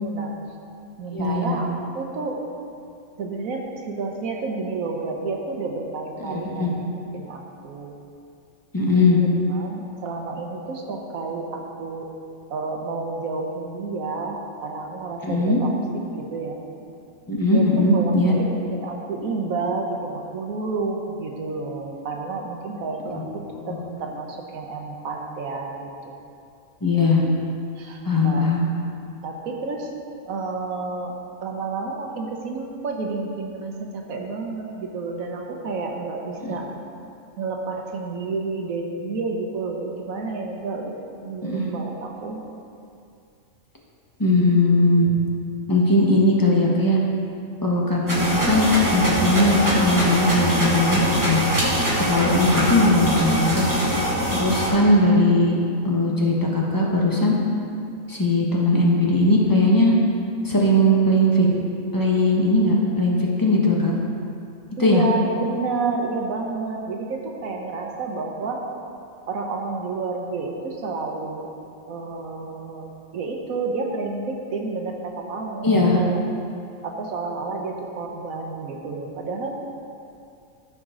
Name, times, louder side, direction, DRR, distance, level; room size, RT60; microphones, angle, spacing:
voice 1, 0.0-0.3 1.0-1.7 1.9-2.4 3.2-6.9 7.1-7.9 9.2-12.1 12.5-15.7 16.1-16.6 17.5-26.1 27.8-28.5 29.2-29.9 30.3-31.2 31.4-36.7 37.4-42.4 64.8-68.6 69.3-71.5 71.9-76.2 76.8-79.6, right 3 dB, 80° right, 1 dB, 1.3 m, -30 dB
voice 2, 1.1-1.6 6.2-6.7 8.7-9.2 15.2-15.6 17.3-18.3 23.0-23.3 23.6-23.7 26.8-27.2 28.0-28.6 36.4-36.6 41.4-41.7 44.2-45.1 45.7-47.0 47.6-48.7 48.9-51.4 52.0-53.6 54.4-55.6 55.8-57.3 58.1-59.9 60.4-61.5 61.9-63.9 64.8-65.0 75.6-76.0, left 1 dB, 15° left, -3 dB, 1.1 m, -19 dB
sound 1, 48.1-54.7, equal, 15° right, 2.0 m, -23 dB
14.5 x 5.2 x 3.8 m, 2.5 s
omnidirectional pair, 1.5 m